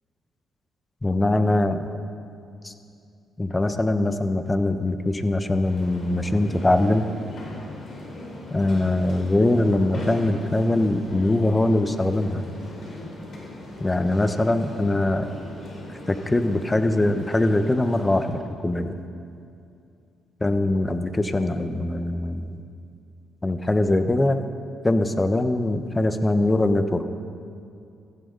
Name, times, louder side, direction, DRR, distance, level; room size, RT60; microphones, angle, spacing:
voice 1, 1.0-1.9 2.6-2.7 3.4-7.1 8.5-12.4 13.8-15.3 16.1-18.9 20.4-22.6 23.4-24.4 24.8-27.0, left 2 dB, 20° left, 9 dB, 1.1 m, -22 dB
sound 1, 5.6-18.3, left 1 dB, 55° left, 4.3 m, -39 dB
16.5 x 15.0 x 4.0 m, 2.5 s
supercardioid pair, 55°, 0 cm